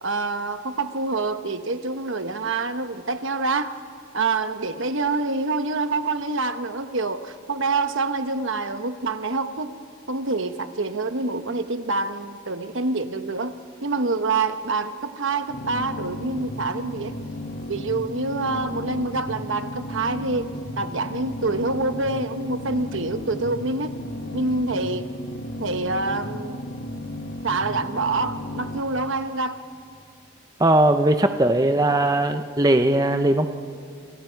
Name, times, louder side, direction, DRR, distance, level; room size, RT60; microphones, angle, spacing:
voice 1, 0.0-3.7 4.1-9.7 10.1-13.5 13.8-17.1 17.7-24.0 24.3-25.1 25.6-26.6 27.4-29.6, right 3 dB, 65° right, 1.1 m, -26 dB
sound 1, 15.5-28.8, left 1 dB, 45° left, 1.4 m, -34 dB
voice 2, 30.6-33.5, right 1 dB, 15° right, 0.7 m, -19 dB
29.0 x 28.5 x 4.6 m
head